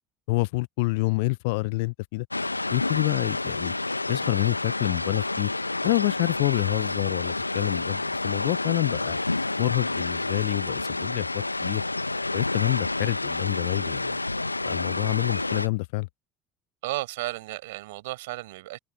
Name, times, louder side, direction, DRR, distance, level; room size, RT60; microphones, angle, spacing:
voice 1, 0.3-2.3 2.7-3.7 4.1-5.5 5.8-9.2 9.6-11.8 12.3-14.2 14.6-16.1, left 25 dB, 60° left, 0.8 m, -27 dB
sound 1, 2.3-15.7, left 2 dB, 90° left, 1.0 m, -29 dB
voice 2, 16.8-18.8, right 19 dB, 65° right, 5.7 m, -33 dB
figure-of-eight pair, 70°, 0 cm